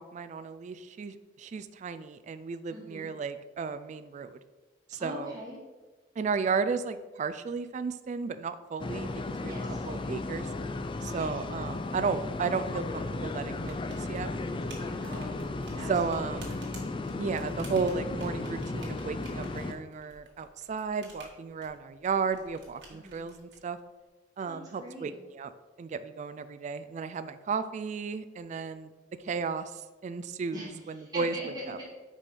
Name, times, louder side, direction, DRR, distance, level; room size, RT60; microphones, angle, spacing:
voice 1, 0.0-4.3 4.9-5.3 6.2-9.5 9.9-10.5 11.0-14.3 15.9-16.4 17.2-23.8 24.4-25.5 25.8-28.9 29.2-31.4 31.7-31.8, right 5 dB, 40° right, 11 dB, 0.3 m, -34 dB
voice 2, 2.7-3.1 5.0-5.6 9.5-9.9 11.1-11.4 14.8-15.3 15.6-16.6 22.9-23.2 24.5-25.2 30.5-31.9, equal, 20° right, -6 dB, 2.1 m, -42 dB
sound 1, 8.8-19.7, left 2 dB, 30° left, 0.4 m, -35 dB
sound 2, 13.6-23.6, right 3 dB, 85° right, 1.7 m, -53 dB
5.3 x 4.9 x 5.3 m, 1.2 s
head